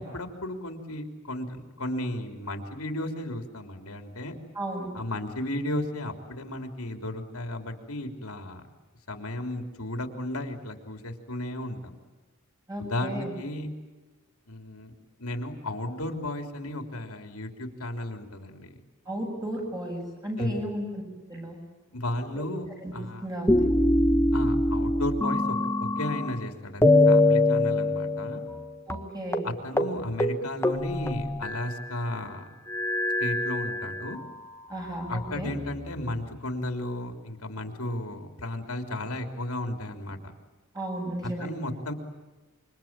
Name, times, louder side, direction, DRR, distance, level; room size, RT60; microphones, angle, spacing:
voice 1, 0.0-4.3 4.9-8.6 9.1-11.9 12.8-13.7 14.5-14.9 15.2-18.7 20.4-20.6 21.9-22.7 22.9-23.2 24.3-28.4 29.4-32.5 33.2-34.2 35.1-40.2 41.2-41.9, left 1 dB, 80° left, 5 dB, 3.5 m, -34 dB
voice 2, 4.5-4.9 12.7-13.3 19.1-21.0 21.3-21.6 22.4-22.5 22.8-22.9 23.2-23.7 28.9-29.5 34.7-35.5 40.7-41.5, right 1 dB, 15° right, 1 dB, 7.5 m, -34 dB
sound 1, 23.5-26.4 26.8-28.6 28.9-29.0 29.3-29.5 29.8-29.9 30.2-31.9 32.7-34.3 35.0-35.9, left 1 dB, 10° left, 1.4 m, -24 dB
27.5 x 24.5 x 8.9 m, 1.2 s
head